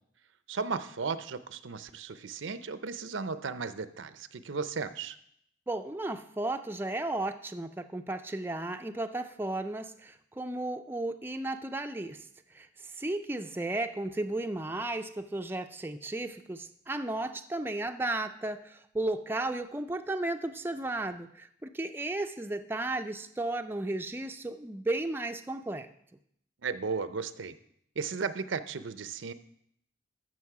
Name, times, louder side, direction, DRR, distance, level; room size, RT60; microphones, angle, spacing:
voice 1, 0.5-5.2 26.6-27.5 28.0-29.3, right 5 dB, 80° right, 12 dB, 0.6 m, -35 dB
voice 2, 5.7-12.2 12.5-12.7 12.9-25.9, right 2 dB, 10° right, 6 dB, 0.4 m, -34 dB
14.0 x 6.3 x 4.7 m, 0.71 s
head